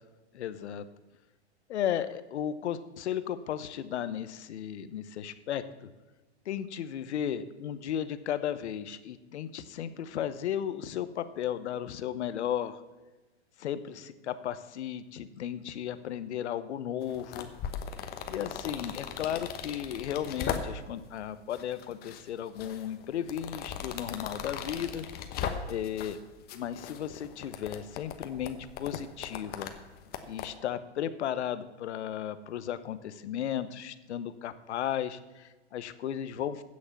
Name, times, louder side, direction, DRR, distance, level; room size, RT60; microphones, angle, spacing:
voice 1, 0.3-0.9 1.7-5.9 6.5-12.8 13.6-17.5 18.3-25.1 25.7-26.2 26.5-29.7 30.2-36.6, left 10 dB, 75° left, 13 dB, 1.0 m, -35 dB
sound 1, 17.0-21.0 21.5-22.2 22.6-26.2 26.5-30.5, left 8 dB, 30° left, 1.1 m, -38 dB
15.5 x 6.5 x 7.2 m, 1.1 s
hypercardioid pair, 130°, 34 cm